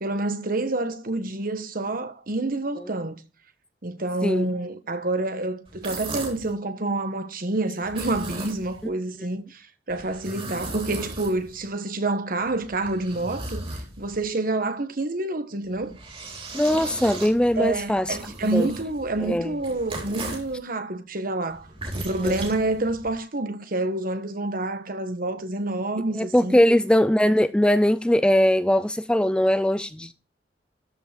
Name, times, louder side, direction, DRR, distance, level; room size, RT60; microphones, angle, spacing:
voice 1, 0.0-3.2 3.8-13.6 14.0-16.0 17.6-21.7 21.9-26.6, right 2 dB, 55° right, 1.3 m, -28 dB
sound 1, 5.7-6.5 7.8-8.9 9.9-11.7 12.4-14.2 15.6-20.5 21.5-23.1, right 2 dB, 35° right, 3.7 m, -37 dB
voice 2, 16.5-18.7 19.2-19.5 22.2-22.5 26.2-30.1, equal, 5° left, 0.4 m, -21 dB
13.5 x 5.5 x 5.1 m
head